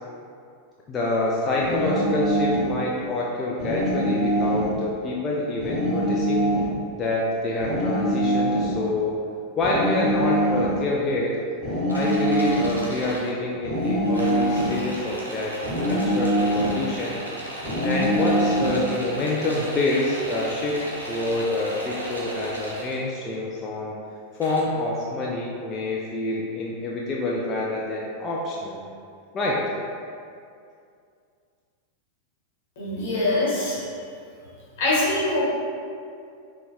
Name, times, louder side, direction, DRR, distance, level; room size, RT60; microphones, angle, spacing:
voice 1, 0.9-6.5 6.9-9.1 9.6-11.3 11.9-17.2 17.8-23.9 24.4-28.8 29.3-29.6, left 2 dB, 25° left, -4 dB, 0.3 m, -27 dB
sound 1, 1.6-2.7 3.6-4.7 5.6-6.7 7.6-8.7 9.6-10.8 11.6-12.8 13.6-14.8 15.6-16.8 17.6-18.8, equal, 20° right, 0.9 m, -23 dB
sound 2, 11.9-13.3 13.7-23.0 24.3-24.6, right 1 dB, 85° right, 0.5 m, -36 dB
voice 2, 32.8-34.0 34.8-35.4, left 2 dB, 55° left, -7 dB, 1.0 m, -24 dB
3.9 x 2.1 x 2.3 m, 2.4 s
figure-of-eight pair, 90°, 0 cm